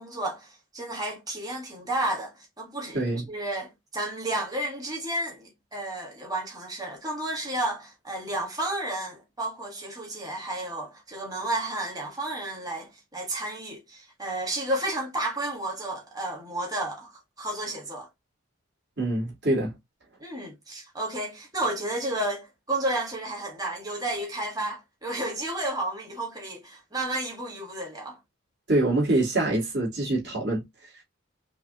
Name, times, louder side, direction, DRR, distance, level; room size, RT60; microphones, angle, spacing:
voice 1, 0.0-18.1 20.2-28.2, right 1 dB, 20° right, 1.5 m, -32 dB
voice 2, 2.9-3.2 19.0-19.7 28.7-30.6, right 2 dB, 55° right, 2.5 m, -25 dB
5.4 x 2.5 x 2.9 m
head